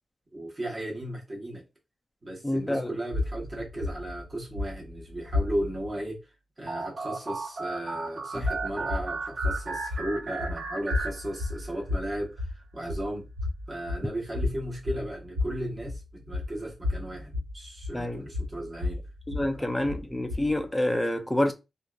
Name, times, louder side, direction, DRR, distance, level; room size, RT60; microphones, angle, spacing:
voice 1, 0.3-1.6 2.2-6.2 6.6-13.3 13.7-19.0 19.5-20.0, right 1 dB, 30° right, 1.0 m, -35 dB
voice 2, 2.4-3.0 8.4-8.5 17.9-18.2 19.3-21.5, left 1 dB, 10° left, 0.3 m, -27 dB
sound 1, 3.1-5.9 8.3-20.7, left 2 dB, 70° right, 1.5 m, -33 dB
sound 2, 6.7-11.8, right 3 dB, 50° right, 0.5 m, -35 dB
2.6 x 2.3 x 2.2 m
wide cardioid pair, 130°, 0 cm